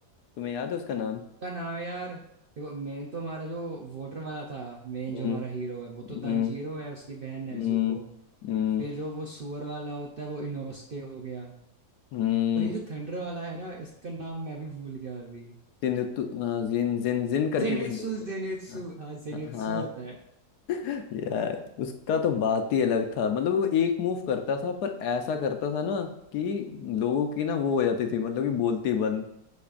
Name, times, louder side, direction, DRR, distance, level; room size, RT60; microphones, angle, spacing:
voice 1, 0.4-1.2 5.1-5.4 6.1-6.5 7.5-8.0 8.4-8.9 12.1-12.7 15.8-18.0 19.4-19.8 20.7-29.2, left 7 dB, 75° left, 6 dB, 1.2 m, -28 dB
voice 2, 1.4-2.2 2.6-8.1 8.8-11.5 12.5-15.6 17.6-20.2, right 3 dB, 50° right, -1 dB, 0.6 m, -36 dB
11.5 x 4.1 x 2.5 m, 0.79 s
omnidirectional pair, 1.7 m